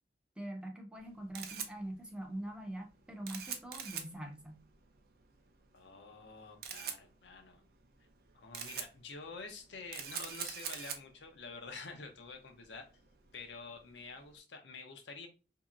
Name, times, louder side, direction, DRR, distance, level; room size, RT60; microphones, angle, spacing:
voice 1, 0.4-4.6, right 1 dB, 5° right, 3 dB, 0.5 m, -43 dB
Camera, 1.0-14.3, right 8 dB, 60° right, 0.5 m, -46 dB
voice 2, 5.7-7.6 8.3-12.8 13.3-15.3, left 4 dB, 85° left, 5 dB, 0.6 m, -48 dB
2.9 x 2.8 x 2.4 m, 0.32 s
head